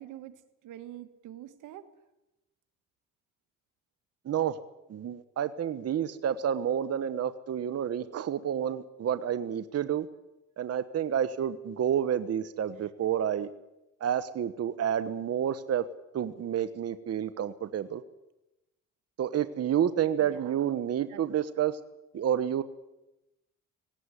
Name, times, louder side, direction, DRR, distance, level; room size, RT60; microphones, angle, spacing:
voice 1, 0.0-1.9 20.2-20.6 21.1-21.2, right 12 dB, 85° right, 11 dB, 1.7 m, -45 dB
voice 2, 4.2-4.6 4.9-10.1 10.6-13.5 14.0-15.8 16.1-18.0 19.2-21.8 22.1-22.6, right 9 dB, 55° right, 12 dB, 1.1 m, -29 dB
18.0 x 17.5 x 9.8 m, 0.97 s
cardioid pair, 90°, 30 cm